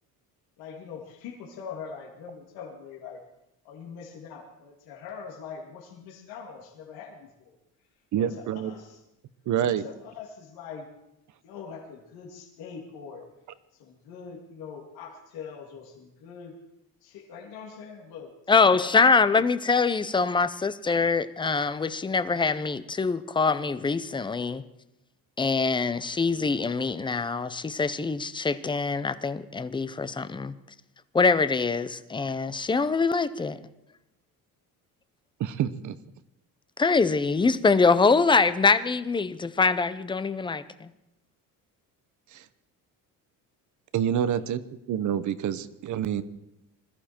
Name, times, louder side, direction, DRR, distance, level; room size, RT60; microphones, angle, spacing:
voice 1, 0.6-3.2 3.6-7.5 8.2-9.0 9.6-10.9 11.4-13.3 13.7-16.5 17.0-18.9, left 6 dB, 85° left, 0 dB, 2.7 m, -43 dB
voice 2, 8.1-8.7 9.5-9.8 35.4-36.0 42.3-42.4 43.9-44.6 44.9-46.2, right 9 dB, 55° right, 14 dB, 0.9 m, -27 dB
voice 3, 18.5-24.6 25.4-30.5 31.1-33.6 36.8-40.9, left 4 dB, 15° left, 13 dB, 0.6 m, -24 dB
21.0 x 14.0 x 4.5 m, 0.88 s
cardioid pair, 140°, 36 cm